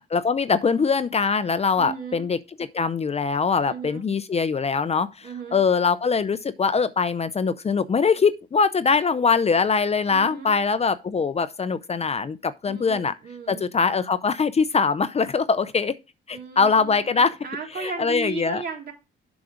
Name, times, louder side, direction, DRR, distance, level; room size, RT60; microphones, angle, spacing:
voice 1, 0.0-2.4 2.7-13.1 13.5-15.9 16.3-17.4 17.8-18.6, left 5 dB, 30° left, 0.6 m, -22 dB
voice 2, 1.8-2.3 3.7-4.0 5.2-5.6 10.1-10.6 12.7-13.7 16.3-18.9, right 5 dB, 55° right, 3.5 m, -36 dB
7.7 x 6.0 x 5.0 m
cardioid pair, 90°, 20 cm